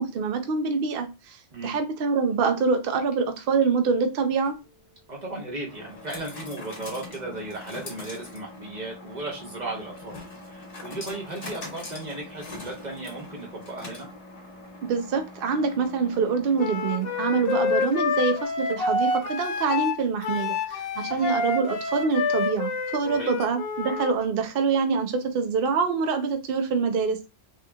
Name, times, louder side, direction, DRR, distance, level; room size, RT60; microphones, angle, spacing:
voice 1, 0.0-4.5 14.8-27.3, right 5 dB, 60° right, 7 dB, 0.7 m, -25 dB
sound 1, 4.3-18.2, left 2 dB, 90° left, 1.6 m, -43 dB
voice 2, 5.1-10.2 10.5-14.1 21.1-21.3 23.1-23.3, right 2 dB, 40° right, -1 dB, 1.1 m, -36 dB
Wind instrument woodwind instrument, 16.6-24.1, left 4 dB, 60° left, 0.8 m, -28 dB
3.4 x 2.9 x 2.3 m, 0.28 s
omnidirectional pair, 1.2 m